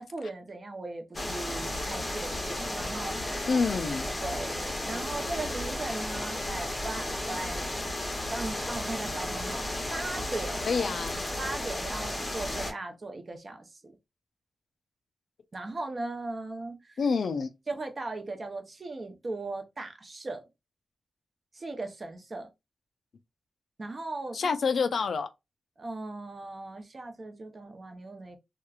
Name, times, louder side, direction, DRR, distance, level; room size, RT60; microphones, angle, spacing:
voice 1, 0.0-3.5 4.2-7.7 8.3-9.6 9.9-10.7 11.4-14.0 15.5-17.0 17.7-20.4 21.5-22.5 23.8-24.5 25.8-28.4, right 2 dB, 35° right, 0.6 m, -38 dB
sound 1, 1.1-12.7, left 1 dB, 20° left, 0.7 m, -33 dB
voice 2, 3.5-4.1 10.6-11.2 17.0-17.5 24.3-25.3, left 5 dB, 65° left, 0.3 m, -27 dB
2.9 x 2.4 x 2.3 m
wide cardioid pair, 160°, 0 cm